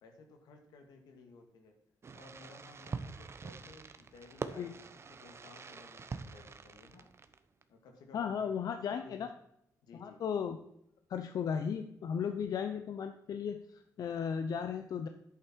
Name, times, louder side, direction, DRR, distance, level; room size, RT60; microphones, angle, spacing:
voice 1, 0.0-1.8 2.1-7.1 7.7-9.3 9.8-10.2, left 3 dB, 85° left, 4 dB, 2.3 m, -57 dB
Fireworks, 2.0-7.6, right 4 dB, 40° right, 1.0 m, -45 dB
voice 2, 8.1-9.3 10.0-10.6 11.1-15.1, left 7 dB, 65° left, 8 dB, 0.8 m, -35 dB
10.5 x 8.7 x 4.6 m, 0.79 s
cardioid pair, 85°, 7 cm